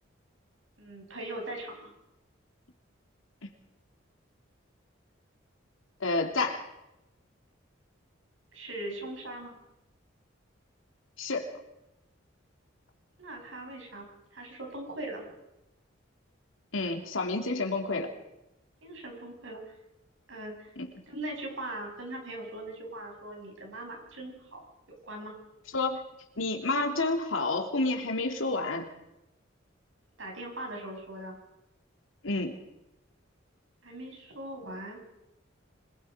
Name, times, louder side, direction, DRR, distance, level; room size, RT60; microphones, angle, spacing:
voice 1, 0.8-1.9 8.5-9.5 13.2-15.2 18.8-19.7 20.3-20.7 21.1-24.6 25.0-25.3 30.2-31.4 33.8-35.0, right 1 dB, 75° right, 2 dB, 6.8 m, -40 dB
voice 2, 6.0-6.7 11.2-11.5 16.7-18.1 20.8-20.9 25.7-26.1 26.4-28.9 32.2-32.6, left 2 dB, 90° left, 3 dB, 3.1 m, -29 dB
26.0 x 20.5 x 5.2 m, 0.93 s
head